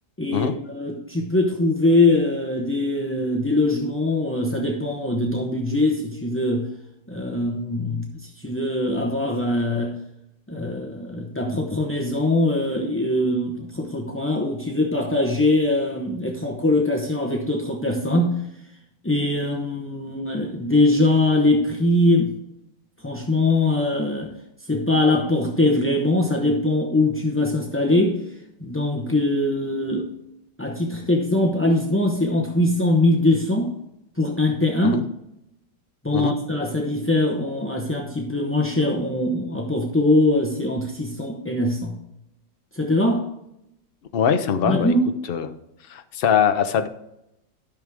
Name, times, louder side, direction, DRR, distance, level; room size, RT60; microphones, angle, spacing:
voice 1, 0.2-6.7 7.1-10.0 10.5-18.4 19.0-22.3 23.0-24.3 24.7-28.2 28.6-30.1 30.6-33.7 34.2-35.0 36.0-42.0 42.7-43.3 44.6-45.1, left 2 dB, 15° left, 0 dB, 0.5 m, -22 dB
voice 2, 44.1-44.9 45.3-45.5 45.9-46.9, left 8 dB, 65° left, 9 dB, 0.5 m, -22 dB
12.0 x 6.2 x 3.5 m, 0.83 s
omnidirectional pair, 1.8 m